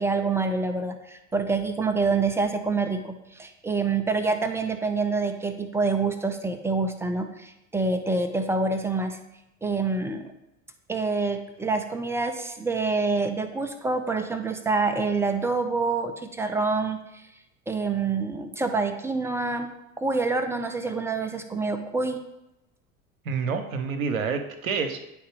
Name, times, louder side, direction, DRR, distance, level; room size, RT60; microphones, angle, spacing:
voice 1, 0.0-9.2 9.6-10.3 10.9-17.2 17.7-22.2, right 3 dB, 5° right, 7 dB, 0.4 m, -27 dB
voice 2, 23.3-25.0, right 5 dB, 80° right, 7 dB, 0.7 m, -28 dB
9.3 x 3.4 x 3.2 m, 0.90 s
figure-of-eight pair, 75°, 41 cm